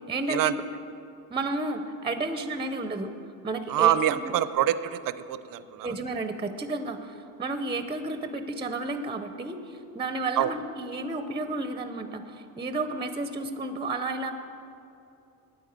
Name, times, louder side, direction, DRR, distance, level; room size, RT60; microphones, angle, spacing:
voice 1, 0.1-0.5 1.3-3.1 3.4-3.9 5.8-14.3, right 2 dB, 15° right, 8 dB, 0.6 m, -32 dB
voice 2, 3.7-5.9 10.4-10.5, right 12 dB, 60° right, 14 dB, 0.6 m, -25 dB
9.3 x 9.1 x 8.8 m, 2.7 s
cardioid pair, 110°, 38 cm